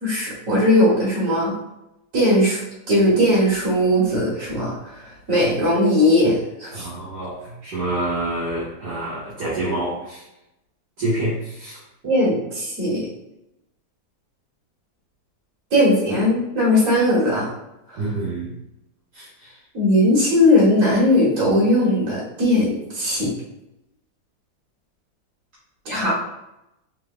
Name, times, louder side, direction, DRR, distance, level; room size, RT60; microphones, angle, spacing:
voice 1, 0.0-1.5 2.1-4.9 5.3-6.9 12.0-13.1 15.7-17.5 17.9-18.0 19.7-23.3 25.9-26.1, left 1 dB, 45° right, -5 dB, 1.9 m, -19 dB
voice 2, 6.7-10.2 11.0-11.8 18.0-18.5 19.1-19.3, right 2 dB, 60° right, -8 dB, 1.7 m, -27 dB
4.7 x 3.7 x 2.3 m, 0.88 s
omnidirectional pair, 2.1 m